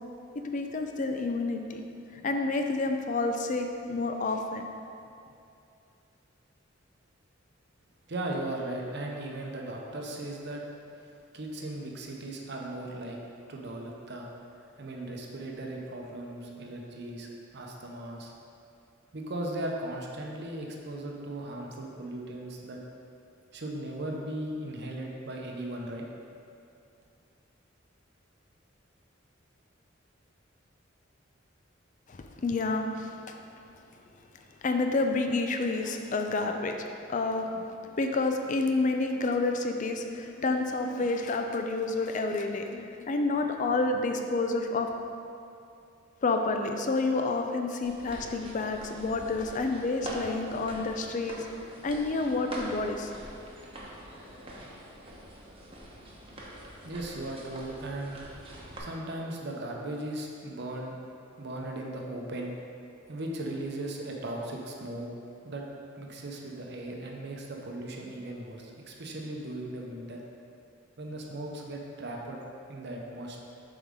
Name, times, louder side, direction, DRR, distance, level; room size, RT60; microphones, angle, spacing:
voice 1, 0.3-1.8 2.1-4.6 32.1-33.4 34.6-36.8 37.1-44.9 46.2-51.5 51.8-53.1, left 3 dB, 40° left, 5 dB, 0.4 m, -29 dB
voice 2, 8.1-10.6 11.3-13.2 13.5-14.3 14.8-17.3 17.5-18.3 19.1-22.8 23.5-26.0 56.8-58.2 58.8-61.0 61.4-62.5 63.1-65.1 65.4-65.6 66.0-70.2 71.0-72.4 72.7-73.4, right 1 dB, 60° right, 0 dB, 0.8 m, -37 dB
sound 1, 47.8-58.8, right 1 dB, 30° right, 1.0 m, -44 dB
7.1 x 4.9 x 3.7 m, 2.6 s
head